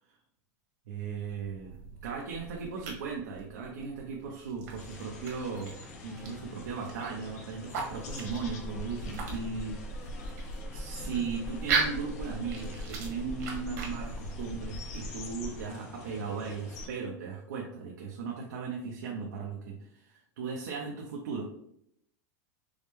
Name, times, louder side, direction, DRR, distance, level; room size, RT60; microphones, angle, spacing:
voice 1, 0.9-5.7 6.0-9.8 10.7-21.5, right 5 dB, 90° right, -1 dB, 0.7 m, -37 dB
sound 1, 1.1-15.2, right 5 dB, 70° right, 1.3 m, -39 dB
sound 2, 4.8-16.9, left 1 dB, 70° left, 0.8 m, -41 dB
4.8 x 2.1 x 3.3 m, 0.71 s
supercardioid pair, 160°, 9 cm